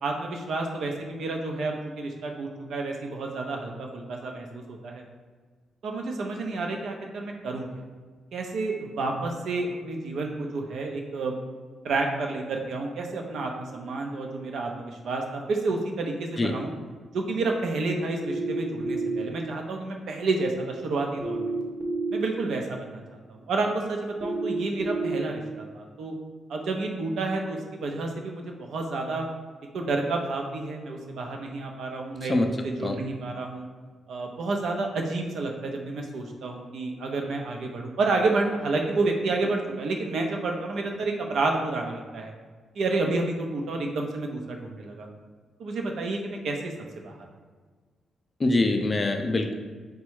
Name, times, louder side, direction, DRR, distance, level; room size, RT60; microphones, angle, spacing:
voice 1, 0.0-5.0 5.8-7.7 8.3-11.3 11.8-16.7 17.1-21.5 22.1-26.1 26.5-29.3 29.7-33.7 34.1-42.3 42.8-45.1 45.6-46.7 47.0-47.3, right 3 dB, 70° right, 2 dB, 0.6 m, -30 dB
sound 1, 18.2-19.2 21.2-22.2 24.2-25.2, right 3 dB, 5° right, 0.7 m, -29 dB
voice 2, 48.4-49.5, left 2 dB, 25° left, 5 dB, 0.3 m, -24 dB
4.1 x 2.3 x 4.6 m, 1.5 s
wide cardioid pair, 160°, 0 cm